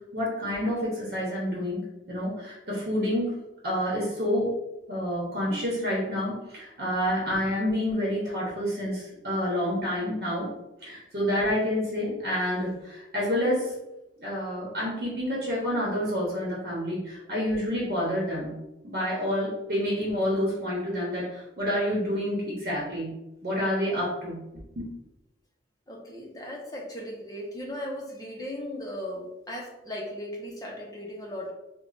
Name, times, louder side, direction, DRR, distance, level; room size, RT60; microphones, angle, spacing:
voice 1, 0.1-3.3 3.6-4.5 4.9-10.5 10.8-13.7 14.2-18.6 18.8-23.1 23.4-24.4 24.8-24.9, equal, 60° right, -5 dB, 0.9 m, -28 dB
voice 2, 25.9-31.5, left 1 dB, 20° left, -1 dB, 0.6 m, -37 dB
3.2 x 2.2 x 3.8 m, 0.96 s
head